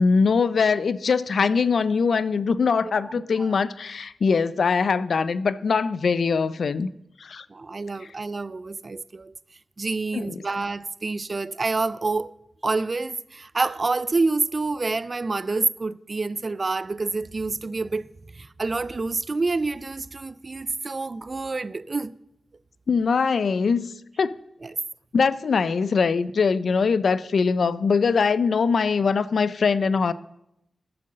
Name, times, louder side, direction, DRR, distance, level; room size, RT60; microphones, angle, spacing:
voice 1, 0.0-6.9 7.2-7.5 10.1-10.4 22.9-23.9 24.2-24.3 25.1-30.1, left 5 dB, 75° left, 0.5 m, -22 dB
voice 2, 7.5-9.3 9.8-12.3 12.6-22.1 24.6-24.8, right 3 dB, 40° right, 0.4 m, -28 dB
11.5 x 7.7 x 6.5 m
wide cardioid pair, 85°, 0 cm